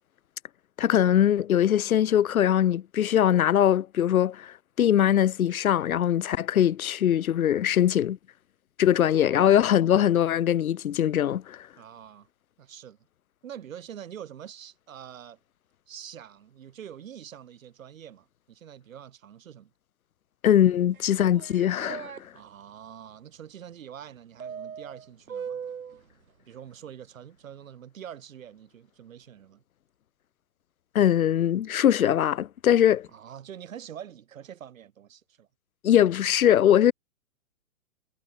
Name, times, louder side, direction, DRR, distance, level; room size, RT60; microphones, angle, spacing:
voice 1, 0.8-8.2 8.8-11.7 20.4-22.1 30.9-33.1 35.8-36.9, left 10 dB, 80° left, 0.8 m, -22 dB
voice 2, 9.0-9.6 11.8-12.3 12.6-13.0 13.4-15.4 15.9-19.7 22.3-25.6 26.5-29.6 33.1-35.5, right 9 dB, 65° right, 5.8 m, -45 dB
sound 1, 20.9-22.2 24.4-26.0, right 7 dB, 85° right, 2.9 m, -38 dB
hypercardioid pair, 130°, 42 cm